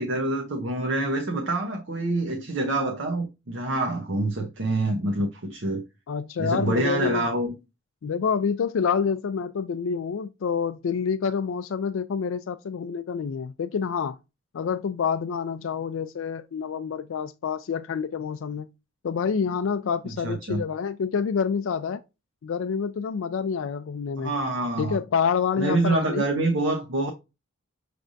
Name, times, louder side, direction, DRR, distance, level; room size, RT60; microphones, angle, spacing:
voice 1, 0.0-5.8 6.4-7.5 20.0-20.6 24.2-25.0 25.6-27.1, right 2 dB, 65° right, 0.8 m, -26 dB
voice 2, 6.1-7.3 8.0-14.2 14.5-18.7 19.0-22.0 22.4-24.3 24.8-26.2, left 6 dB, 75° left, 0.4 m, -27 dB
6.1 x 3.3 x 2.6 m
head